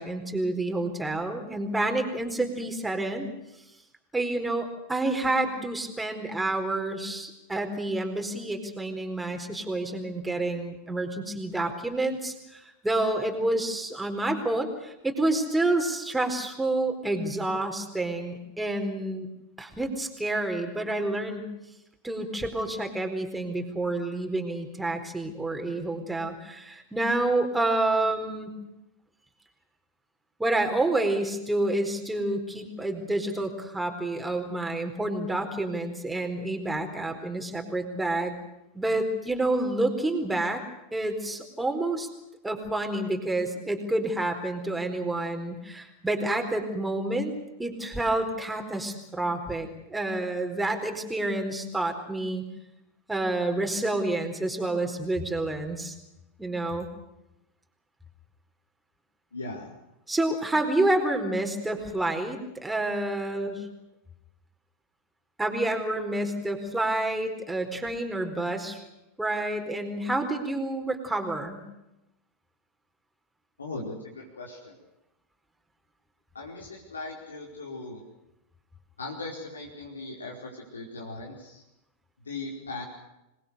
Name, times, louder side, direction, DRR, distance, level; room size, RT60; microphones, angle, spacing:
voice 1, 0.0-3.3 4.1-19.3 19.6-21.5 22.0-28.6 30.4-38.3 38.7-40.6 40.9-42.1 42.4-52.5 53.1-55.9 56.4-56.9 60.1-63.7 65.4-68.8 69.2-71.6, right 2 dB, 5° right, 4 dB, 4.4 m, -29 dB
voice 2, 59.3-59.7 73.6-74.8 76.3-78.0 79.0-81.6 82.2-82.8, left 3 dB, 75° left, -2 dB, 4.7 m, -38 dB
27.0 x 21.0 x 6.6 m, 0.91 s
figure-of-eight pair, 90°, 0 cm